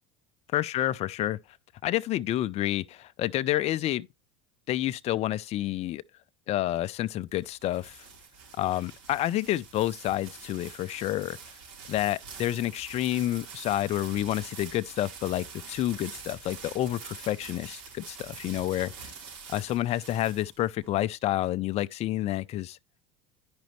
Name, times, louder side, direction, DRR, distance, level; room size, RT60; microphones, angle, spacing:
voice 1, 0.5-1.4 1.8-4.1 4.7-6.0 6.5-8.0 8.6-11.4 11.9-19.1 19.5-22.8, left 14 dB, 40° left, 0.5 m, -29 dB
sound 1, 7.1-20.9, right 5 dB, 75° right, 4.0 m, -45 dB
10.5 x 5.2 x 3.1 m
hypercardioid pair, 90°, 16 cm